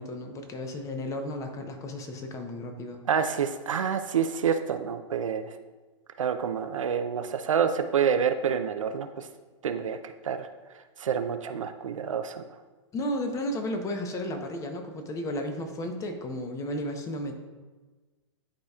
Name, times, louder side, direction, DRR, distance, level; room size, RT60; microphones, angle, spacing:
voice 1, 0.0-3.0 12.9-17.3, left 1 dB, 20° left, 5 dB, 0.8 m, -33 dB
voice 2, 3.1-5.5 6.2-9.3 9.6-10.0 10.2-10.5 11.0-12.4, right 7 dB, 80° right, 8 dB, 0.6 m, -28 dB
11.5 x 4.1 x 2.4 m, 1.3 s
hypercardioid pair, 125°, 16 cm